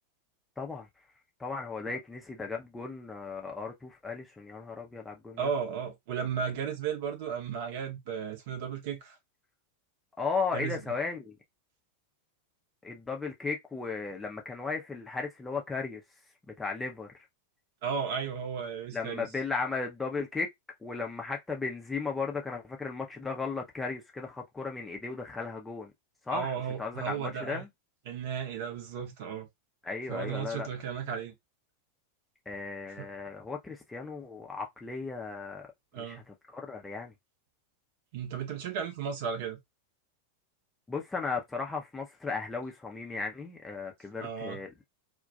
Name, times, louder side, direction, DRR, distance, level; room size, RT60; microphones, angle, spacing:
voice 1, 1.4-5.5 10.2-11.4 12.8-16.0 16.5-17.1 18.9-20.5 20.8-25.9 26.3-27.7 29.8-30.7 32.5-35.6 36.0-37.1 40.9-44.7, left 4 dB, 10° left, 0.5 m, -36 dB
voice 2, 5.4-9.2 10.5-10.8 17.8-19.3 26.3-27.6 28.1-29.5 30.1-31.3 33.0-33.1 35.9-36.2 38.1-39.6 44.2-44.6, right 7 dB, 50° right, 0.8 m, -34 dB
2.3 x 2.1 x 2.6 m
figure-of-eight pair, 90°, 0 cm